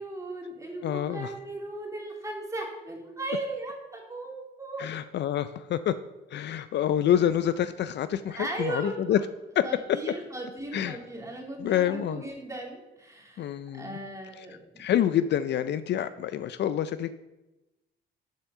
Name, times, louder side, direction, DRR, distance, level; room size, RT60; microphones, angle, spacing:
voice 1, 0.0-4.9 8.3-9.2 9.6-13.4 13.7-14.6, right 2 dB, 15° right, -1 dB, 2.5 m, -37 dB
voice 2, 0.8-1.3 4.8-6.0 6.3-9.2 9.6-10.0 10.7-11.0 11.6-12.2 13.4-13.9 14.8-17.1, left 10 dB, 60° left, 13 dB, 0.4 m, -27 dB
7.2 x 5.5 x 6.6 m, 1.0 s
cardioid pair, 90°, 20 cm